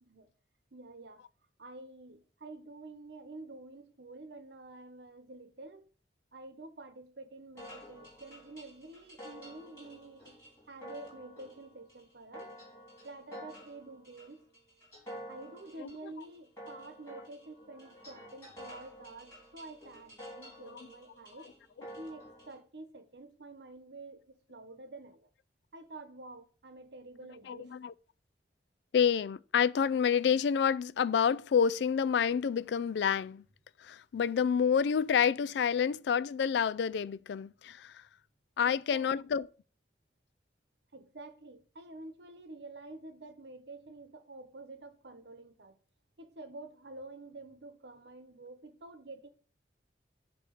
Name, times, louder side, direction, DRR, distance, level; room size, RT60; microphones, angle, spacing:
voice 1, 0.7-1.2 1.6-5.8 6.3-10.4 10.7-12.5 13.0-14.4 15.3-21.5 22.0-25.3 25.7-27.8 38.6-39.1 40.9-45.8 46.2-49.3, right 2 dB, 75° right, 1.0 m, -49 dB
sound 1, 7.6-22.6, equal, 15° left, 3.7 m, -50 dB
voice 2, 27.5-27.9 28.9-33.4 33.8-38.0 38.6-39.5, left 7 dB, 75° left, 0.3 m, -28 dB
9.0 x 3.0 x 6.4 m
head